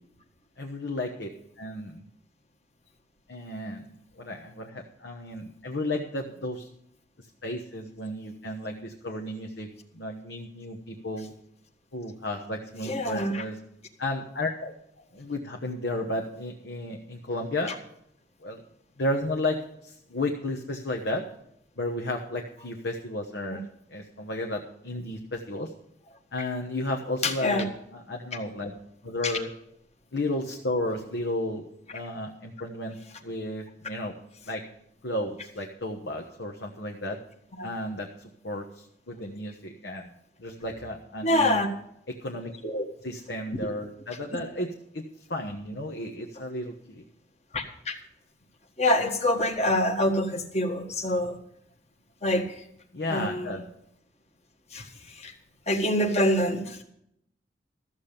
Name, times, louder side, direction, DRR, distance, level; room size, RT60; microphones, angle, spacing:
voice 1, 0.6-1.3 1.6-2.0 3.3-6.7 7.4-9.7 9.9-11.3 11.9-13.6 14.0-14.7 15.1-17.8 18.4-18.6 19.0-21.2 21.8-23.6 23.9-25.7 26.3-28.7 29.0-29.5 30.1-31.6 31.9-34.1 34.5-34.6 35.0-37.2 37.6-38.1 38.4-40.1 40.4-41.6 42.1-45.0 45.3-47.0 52.9-53.6, left 1 dB, 80° left, 2 dB, 1.2 m, -33 dB
voice 2, 12.8-13.4 23.5-23.6 27.2-27.6 29.2-29.3 37.6-37.7 41.2-41.7 42.6-42.8 47.5-48.0 48.8-51.4 52.2-52.5 53.1-53.5 54.7-55.3 55.7-56.8, left 1 dB, 40° left, 5 dB, 1.5 m, -26 dB
14.0 x 7.4 x 6.7 m, 0.74 s
head